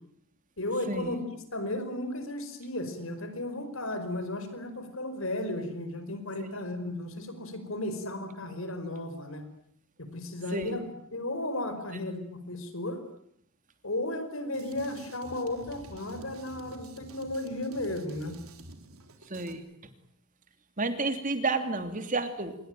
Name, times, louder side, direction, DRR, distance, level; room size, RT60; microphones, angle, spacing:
voice 1, 0.6-1.2 1.5-9.4 10.1-10.8 11.1-13.0 13.8-18.4, left 1 dB, 70° left, 10 dB, 5.0 m, -34 dB
Drum kit, 14.5-19.5, right 2 dB, 80° right, 3.7 m, -49 dB
voice 2, 19.3-19.9 20.8-22.6, right 3 dB, 35° right, 8 dB, 2.9 m, -31 dB
27.5 x 22.0 x 9.2 m, 0.71 s
head